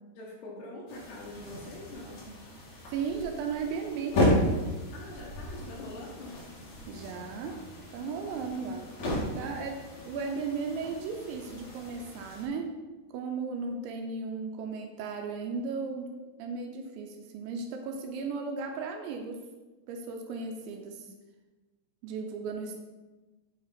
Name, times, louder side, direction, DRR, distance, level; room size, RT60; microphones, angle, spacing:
voice 1, 0.2-2.3 4.9-6.4 10.0-10.4 21.0-21.1 22.3-22.7, left 2 dB, 70° left, -2 dB, 2.9 m, -44 dB
sound 1, 0.9-12.5, left 1 dB, 45° left, 2.6 m, -34 dB
voice 2, 2.9-4.2 6.9-7.6 7.9-8.9 9.3-12.7 13.1-16.1 16.4-19.4 19.9-21.1 22.0-22.8, right 5 dB, 80° right, 4 dB, 2.9 m, -35 dB
8.0 x 5.8 x 4.2 m, 1.2 s
omnidirectional pair, 5.5 m